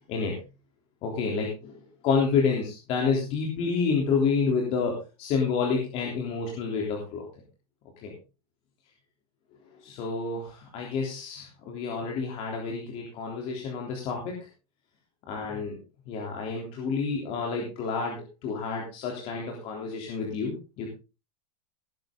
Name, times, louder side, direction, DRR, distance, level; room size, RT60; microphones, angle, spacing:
voice 1, 1.0-1.8 2.0-7.3 8.0-8.1 9.8-14.4 15.3-15.8 16.1-20.9, left 5 dB, 30° left, 0 dB, 3.5 m, -29 dB
17.5 x 10.5 x 3.8 m, 0.31 s
supercardioid pair, 170°, 19 cm